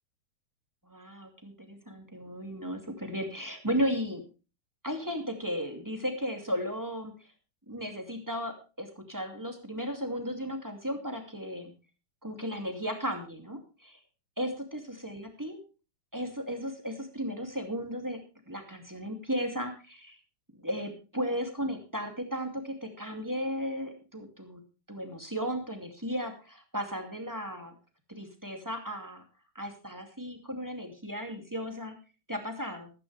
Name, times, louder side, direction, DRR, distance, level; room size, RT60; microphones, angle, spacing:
voice 1, 0.9-4.2 4.8-7.3 7.7-11.7 12.2-14.0 14.4-15.6 16.1-18.2 18.5-20.2 20.5-24.6 24.9-27.7 28.1-29.2 29.5-32.0 32.3-32.9, equal, 10° right, 4 dB, 2.4 m, -35 dB
14.5 x 13.5 x 3.4 m, 0.31 s
omnidirectional pair, 2.4 m